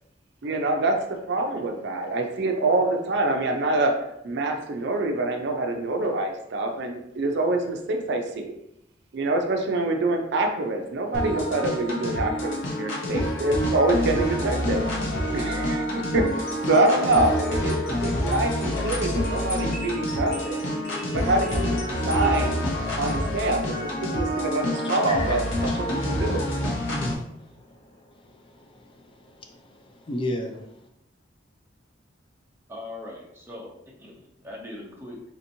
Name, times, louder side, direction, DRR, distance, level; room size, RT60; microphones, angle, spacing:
voice 1, 0.4-0.9 1.3-3.9 4.2-8.5 9.1-14.8 15.3-17.7 18.0-20.6 21.1-21.8 22.1-22.6 23.0-23.6 24.0-25.4 26.0-26.4, right 2 dB, 60° right, 3 dB, 0.5 m, -25 dB
sound 1, 11.1-27.1, equal, 80° left, 0.9 m, -27 dB
sound 2, 16.2-24.5, left 1 dB, 55° left, 1.4 m, -40 dB
voice 2, 25.0-25.4 27.0-30.6, left 1 dB, 25° left, 3 dB, 0.3 m, -36 dB
voice 3, 32.7-35.2, left 2 dB, 10° right, -2 dB, 0.7 m, -40 dB
4.2 x 2.9 x 2.7 m, 0.81 s
head